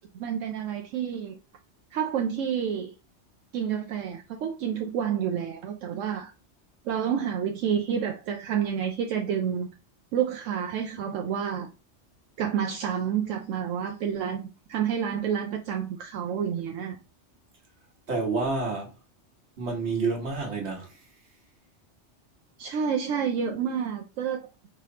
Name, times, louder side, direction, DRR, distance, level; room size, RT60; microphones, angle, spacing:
voice 1, 0.1-1.4 1.9-2.9 3.5-6.3 6.9-9.7 10.1-11.7 12.4-14.4 14.7-17.0 22.6-24.5, right 8 dB, 85° right, 0.9 m, -29 dB
voice 2, 18.1-18.9 19.6-21.0, right 3 dB, 60° right, 1.6 m, -29 dB
5.0 x 3.2 x 2.8 m
omnidirectional pair, 1.3 m